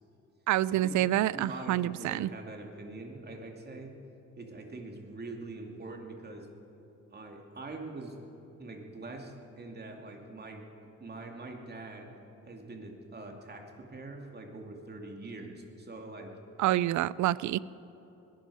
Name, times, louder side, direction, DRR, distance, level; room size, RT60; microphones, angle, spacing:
voice 1, 0.5-2.3 16.6-17.6, right 14 dB, 70° right, 20 dB, 0.4 m, -27 dB
voice 2, 1.3-3.9 4.4-6.5 7.1-8.2 8.6-10.7 11.0-12.1 12.4-16.3, right 2 dB, 35° right, 2 dB, 2.5 m, -43 dB
21.0 x 12.5 x 4.9 m, 3.0 s
cardioid pair, 90°, 30 cm